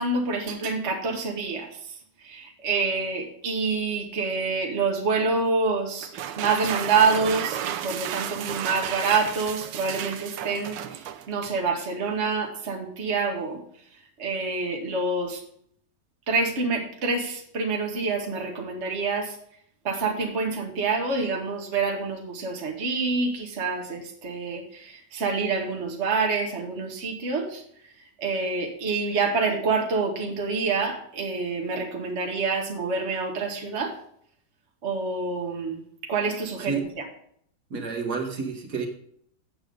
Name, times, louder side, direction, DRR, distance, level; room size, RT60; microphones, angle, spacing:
voice 1, 0.0-13.6 14.2-15.4 16.3-19.4 19.8-27.6 28.2-33.9 34.8-37.0, right 4 dB, 40° right, 1 dB, 1.6 m, -27 dB
sound 1, 6.0-11.6, right 10 dB, 85° right, 1.4 m, -33 dB
voice 2, 37.7-38.9, right 5 dB, 65° right, 2 dB, 2.0 m, -29 dB
7.9 x 7.8 x 5.2 m, 0.65 s
omnidirectional pair, 1.9 m